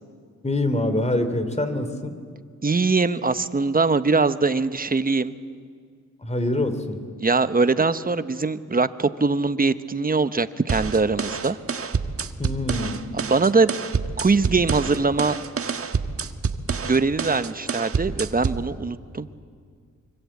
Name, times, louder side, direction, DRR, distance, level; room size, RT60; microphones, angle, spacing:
voice 1, 0.4-2.1 6.2-7.0 12.4-13.0, left 1 dB, 20° left, 10 dB, 2.9 m, -25 dB
voice 2, 2.6-5.3 7.2-11.6 13.2-13.7 14.2-15.4 16.8-19.3, right 4 dB, 30° right, 12 dB, 1.1 m, -22 dB
sound 1, 10.7-18.7, right 5 dB, 45° right, 1.3 m, -28 dB
25.5 x 24.5 x 8.6 m, 2.1 s
cardioid pair, 70°, 30 cm